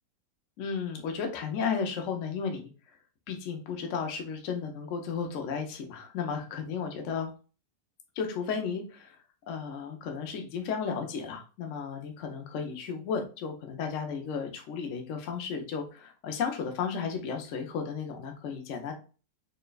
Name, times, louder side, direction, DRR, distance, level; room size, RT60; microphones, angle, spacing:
voice 1, 0.6-2.6 3.3-7.3 8.2-9.2 9.5-18.9, left 6 dB, 60° left, 4 dB, 0.9 m, -34 dB
4.3 x 3.2 x 2.3 m, 0.35 s
omnidirectional pair, 1.6 m